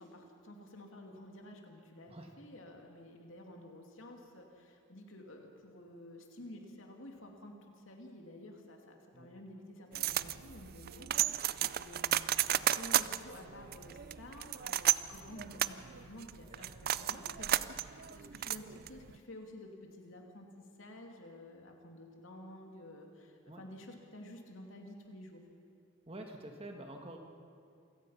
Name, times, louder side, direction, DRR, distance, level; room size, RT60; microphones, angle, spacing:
voice 1, 0.0-25.4, left 1 dB, 65° left, 2 dB, 2.7 m, -51 dB
sound 1, 9.9-19.2, right 12 dB, 45° right, 0.4 m, -33 dB
voice 2, 26.1-27.2, right 1 dB, 25° right, 3 dB, 1.7 m, -48 dB
27.5 x 17.0 x 5.8 m, 2.4 s
head